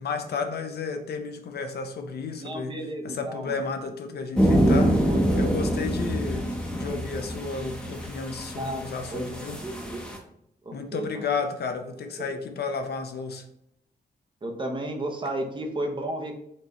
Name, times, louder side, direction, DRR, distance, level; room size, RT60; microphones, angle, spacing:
voice 1, 0.0-9.6 10.7-13.4, left 4 dB, 80° left, 6 dB, 0.7 m, -33 dB
voice 2, 2.4-3.6 5.1-5.5 8.5-9.3 9.6-10.0 10.6-11.3 14.4-16.3, right 1 dB, 30° right, 2 dB, 0.8 m, -33 dB
sound 1, 4.4-10.2, equal, 5° left, 0.8 m, -25 dB
4.5 x 3.9 x 3.0 m, 0.73 s
wide cardioid pair, 155°, 16 cm